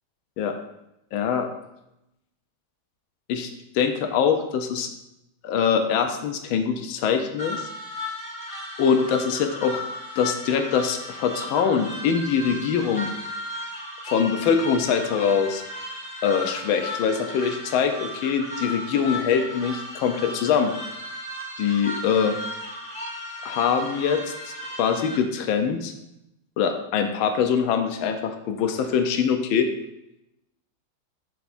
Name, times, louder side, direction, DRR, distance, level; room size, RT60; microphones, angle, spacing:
voice 1, 1.1-1.5 3.3-3.5 3.7-4.9 5.4-7.7 8.8-9.8 10.2-13.1 14.1-15.6 16.2-20.7 21.6-22.4 23.4-24.2 24.5-24.6 24.8-25.9 26.6-29.7, left 7 dB, 85° left, 6 dB, 1.5 m, -23 dB
sound 1, 7.4-25.2, left 1 dB, 25° left, 2.3 m, -35 dB
10.5 x 6.9 x 2.6 m, 0.85 s
omnidirectional pair, 2.2 m